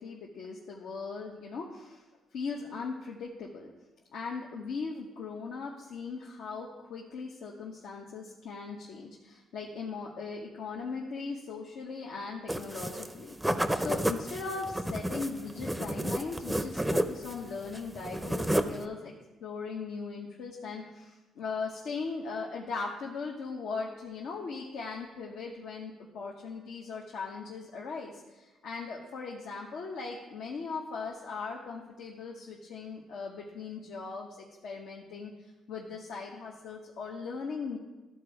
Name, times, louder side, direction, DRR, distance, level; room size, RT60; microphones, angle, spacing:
voice 1, 0.0-2.0 2.3-3.7 4.1-19.1 19.4-37.8, left 4 dB, 80° left, -2 dB, 0.9 m, -39 dB
sound 1, 12.5-13.1 13.4-17.4 17.7-18.8, right 1 dB, 5° right, 0.5 m, -31 dB
12.5 x 4.2 x 4.8 m, 1.1 s
cardioid pair, 90°, 0 cm